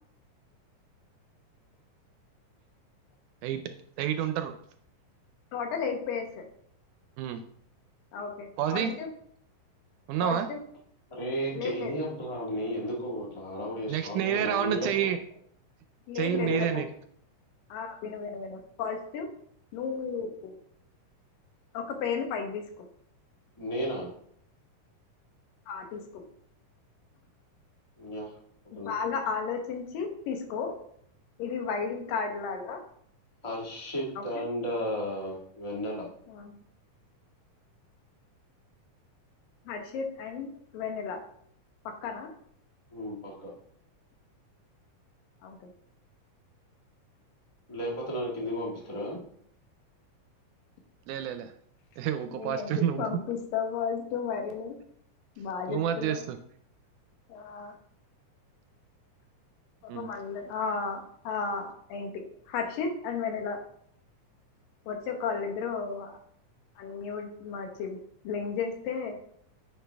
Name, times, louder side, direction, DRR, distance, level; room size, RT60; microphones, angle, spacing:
voice 1, 4.0-4.5 7.2-7.4 8.6-8.9 10.1-10.5 13.9-15.2 16.2-16.9 51.1-51.5 52.0-53.2 55.7-56.4 59.9-60.1, right 10 dB, 80° right, 8 dB, 1.9 m, -29 dB
voice 2, 5.5-6.3 8.1-9.1 10.2-10.6 11.5-11.9 16.1-16.8 17.7-19.3 19.7-20.5 21.7-22.9 25.7-26.2 28.7-30.7 31.4-32.8 34.2-34.3 36.3-36.6 39.7-41.2 42.0-42.3 45.4-45.6 52.3-54.8 55.4-56.2 57.3-57.8 59.8-63.6 64.9-66.2 66.8-68.0 68.2-69.2, left 5 dB, 90° left, 4 dB, 2.8 m, -34 dB
voice 3, 11.1-14.9 16.3-16.8 23.6-24.1 28.0-28.3 28.8-29.2 33.4-36.1 42.9-43.5 47.7-49.2, equal, 30° left, -3 dB, 0.5 m, -33 dB
9.5 x 5.7 x 3.4 m, 0.66 s
omnidirectional pair, 3.8 m